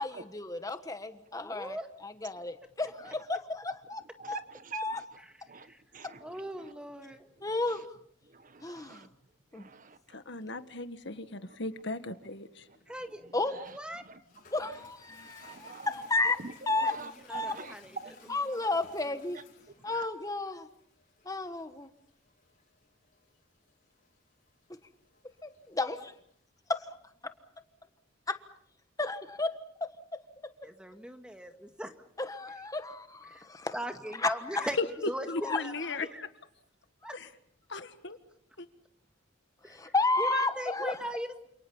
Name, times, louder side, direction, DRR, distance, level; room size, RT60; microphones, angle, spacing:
voice 1, 0.0-1.8 2.0-4.0 4.3-4.4 4.7-5.0 7.4-7.8 8.6-9.1 9.5-9.7 13.3-13.6 14.5-16.4 16.7-16.9 17.3-17.5 18.3-19.4 19.8-20.7 21.2-21.9 25.4-26.1 26.7-26.8 28.3-28.4 29.0-29.5 32.2-33.8 34.2-34.7 35.4-35.6 39.7-41.0, left 2 dB, 15° left, 9 dB, 1.4 m, -32 dB
voice 2, 1.4-1.9 5.2-5.8 6.2-7.3 12.9-13.3 13.7-14.0 16.8-18.1 30.6-31.9 33.3-33.5 33.7-36.3 37.0-37.2 39.6-41.5, equal, 5° right, 6 dB, 1.9 m, -39 dB
voice 3, 4.2-5.0 5.5-6.2 8.3-9.1 9.5-10.0 12.7-12.8 13.5-13.7 14.0-14.2 15.2-15.9 16.2-17.7 18.0-18.1 19.8-20.1, right 4 dB, 40° right, 11 dB, 1.2 m, -46 dB
voice 4, 10.1-12.7 34.8-34.9 35.3-36.1 37.1-37.3 37.7-38.2 38.6-38.7, left 3 dB, 60° left, 10 dB, 1.7 m, -36 dB
Toilet flush, 13.7-26.4, left 4 dB, 45° left, 5.2 m, -60 dB
29.0 x 28.0 x 5.5 m, 0.67 s
head